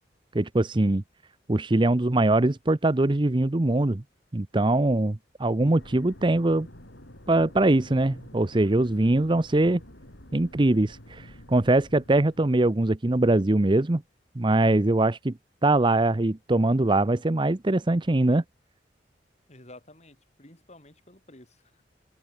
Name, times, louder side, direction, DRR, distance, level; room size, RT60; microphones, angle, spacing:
voice 1, 0.3-1.0 1.5-4.0 4.3-6.7 7.3-9.8 10.3-14.0 14.4-15.3 15.6-18.4, right 2 dB, 25° right, 0.7 m, -22 dB
sound 1, 5.8-12.8, left 1 dB, 85° left, 6.4 m, -48 dB
voice 2, 19.5-21.8, left 1 dB, 40° left, 5.1 m, -51 dB
open air
head